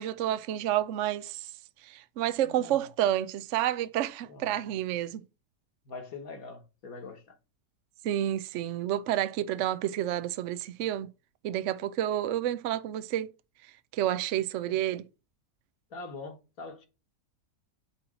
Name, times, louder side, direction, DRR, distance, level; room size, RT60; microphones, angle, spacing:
voice 1, 0.0-1.5 1.8-5.2 8.0-11.1 11.4-13.3 13.9-15.0, right 12 dB, 70° right, 0.7 m, -29 dB
voice 2, 2.4-2.8 4.3-4.6 5.9-7.4 14.6-14.8 15.9-16.9, left 3 dB, 60° left, 1.7 m, -43 dB
8.6 x 3.1 x 6.3 m
omnidirectional pair, 1.7 m